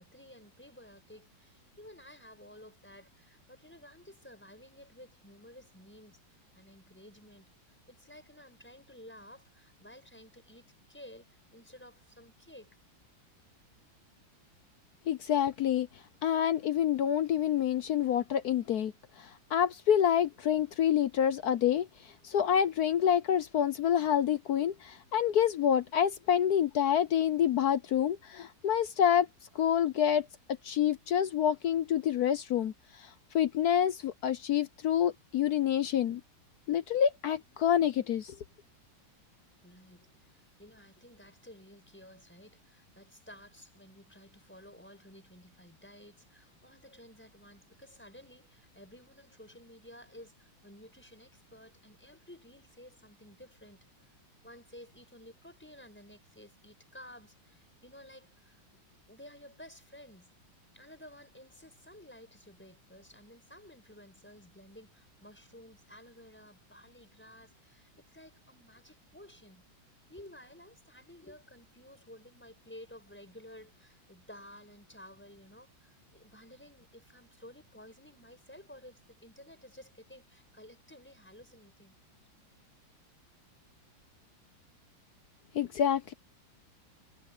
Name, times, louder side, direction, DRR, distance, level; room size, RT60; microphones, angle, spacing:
voice 1, 0.0-6.2 6.5-7.5 7.9-12.8 39.6-53.9 54.4-58.6 59.1-60.3 60.7-69.6 70.1-82.0, left 1 dB, 5° left, 6.6 m, -54 dB
voice 2, 15.1-15.9 16.2-18.9 19.2-21.9 22.2-29.3 29.5-30.3 30.6-32.7 33.0-33.1 33.3-36.2 36.7-38.3 85.5-86.1, left 9 dB, 65° left, 1.1 m, -27 dB
omnidirectional pair, 2.1 m